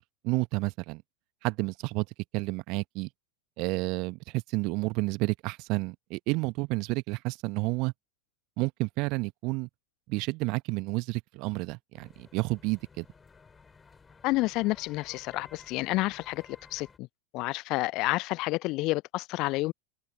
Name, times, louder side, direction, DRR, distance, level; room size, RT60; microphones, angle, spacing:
voice 1, 0.2-1.0 1.4-2.1 2.3-3.1 3.6-7.9 8.6-9.7 10.1-13.0, right 25 dB, 45° right, 1.3 m, -30 dB
sound 1, 11.9-17.0, left 5 dB, 15° left, 5.2 m, -55 dB
voice 2, 14.2-17.1 17.3-19.7, left 21 dB, 40° left, 0.4 m, -29 dB
open air
figure-of-eight pair, 90°, 0 cm